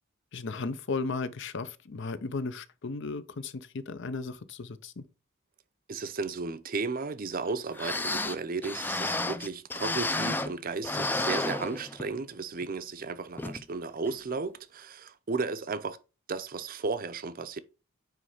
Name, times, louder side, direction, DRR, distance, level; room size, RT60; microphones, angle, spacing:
voice 1, 0.3-5.1, left 3 dB, 60° left, 0.6 m, -35 dB
voice 2, 5.9-16.0 16.3-17.6, right 4 dB, 45° right, 0.6 m, -34 dB
sound 1, 7.5-7.6 7.7-10.6 10.8-12.2 12.6-12.7 13.4-13.6 14.1-14.2, left 2 dB, 10° left, 0.4 m, -32 dB
9.3 x 3.2 x 4.9 m
head